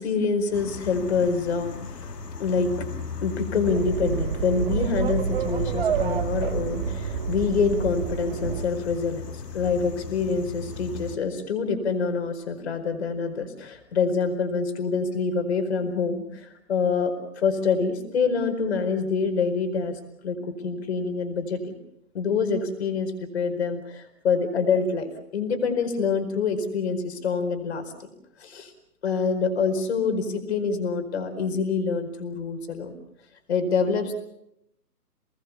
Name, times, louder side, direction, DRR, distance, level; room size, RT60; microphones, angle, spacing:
voice 1, 0.0-20.4 20.6-21.7 22.1-28.1 28.4-28.7 29.0-32.9 33.5-34.1, left 5 dB, 40° left, 7 dB, 4.8 m, -26 dB
sound 1, 0.5-11.2, left 5 dB, 80° left, 2.5 m, -38 dB
sound 2, 3.6-8.6, right 7 dB, 35° right, 1.6 m, -28 dB
29.5 x 20.0 x 7.1 m, 0.80 s
hypercardioid pair, 160°, 47 cm